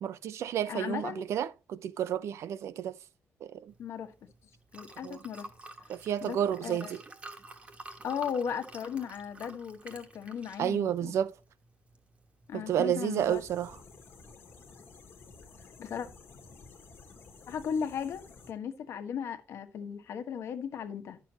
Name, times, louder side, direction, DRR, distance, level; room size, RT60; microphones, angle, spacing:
voice 1, 0.0-2.9 3.4-3.7 5.0-5.2 5.9-7.0 10.6-11.3 12.5-13.7, right 9 dB, 75° right, 0.6 m, -31 dB
voice 2, 0.6-1.3 3.8-4.1 4.7-5.5 5.8-5.9 6.2-6.9 8.0-11.1 12.5-13.4 15.8-16.1 17.5-21.2, left 7 dB, 70° left, 1.2 m, -36 dB
Liquid, 3.7-14.2, right 2 dB, 25° right, 1.2 m, -51 dB
sound 1, 13.2-18.5, left 4 dB, 50° left, 1.5 m, -53 dB
10.5 x 6.7 x 2.9 m
cardioid pair, 145°, 5 cm